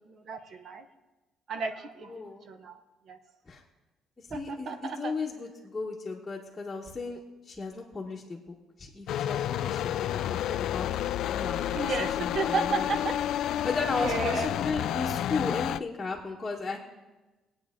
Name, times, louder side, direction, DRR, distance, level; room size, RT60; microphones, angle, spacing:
voice 1, 0.1-0.8 1.5-2.8 3.1-3.2 4.3-5.1 11.7-13.1 14.0-14.5, right 4 dB, 45° right, 8 dB, 0.9 m, -33 dB
voice 2, 2.1-2.4 3.5-3.6 4.2-7.2 7.4-8.4 8.8-10.9 11.3-12.9 13.6-16.8, left 4 dB, 15° left, -4 dB, 1.1 m, -35 dB
sound 1, 9.1-15.8, left 11 dB, 70° left, 0.3 m, -30 dB
21.0 x 8.6 x 3.7 m, 1.1 s
cardioid pair, 155°, 0 cm